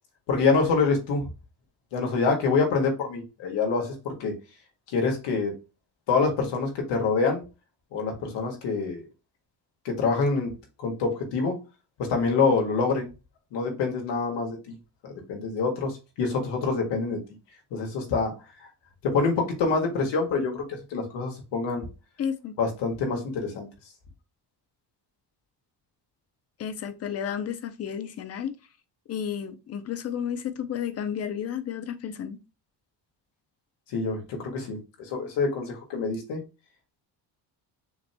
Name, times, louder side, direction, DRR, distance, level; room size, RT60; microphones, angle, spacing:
voice 1, 0.3-1.3 1.9-4.3 4.9-5.5 6.1-7.4 7.9-9.0 9.8-10.5 10.8-11.6 12.0-13.1 13.5-14.7 15.0-17.2 17.7-18.3 19.0-21.8 22.6-23.7 33.9-36.4, left 4 dB, 85° left, 1.7 m, -26 dB
voice 2, 22.2-22.5 26.6-28.6 29.1-32.4, left 8 dB, 35° left, 0.5 m, -32 dB
6.7 x 2.9 x 2.2 m
cardioid pair, 170°, 41 cm